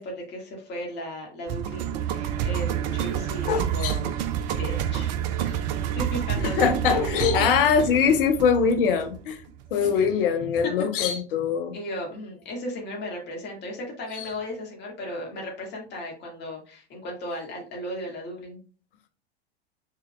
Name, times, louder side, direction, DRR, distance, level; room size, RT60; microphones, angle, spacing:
voice 1, 0.0-4.2 4.6-5.1 5.5-5.6 6.0-7.0 7.4-7.5 9.9-10.1 11.0-11.2 11.7-18.6, left 1 dB, 35° left, 1.9 m, -36 dB
sound 1, 1.5-9.6, right 10 dB, 45° right, 0.5 m, -28 dB
voice 2, 3.5-4.0 6.4-9.4 9.7-11.8 14.1-14.3, left 6 dB, 55° left, 0.8 m, -22 dB
5.8 x 3.5 x 2.2 m
figure-of-eight pair, 90°, 32 cm